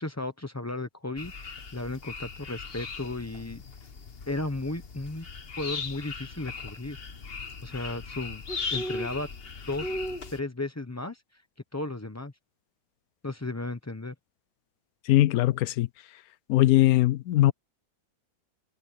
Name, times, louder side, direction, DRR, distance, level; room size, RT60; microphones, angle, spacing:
voice 1, 0.0-3.6 4.3-5.3 5.6-7.0 7.6-8.4 8.7-9.3 9.7-9.9 10.3-11.4 11.7-12.3 13.2-14.1, left 2 dB, 20° left, 0.4 m, -34 dB
sound 1, 1.2-10.4, left 3 dB, 35° left, 1.3 m, -38 dB
voice 2, 15.1-15.9 16.5-17.5, left 15 dB, 70° left, 0.9 m, -21 dB
omnidirectional pair, 1.9 m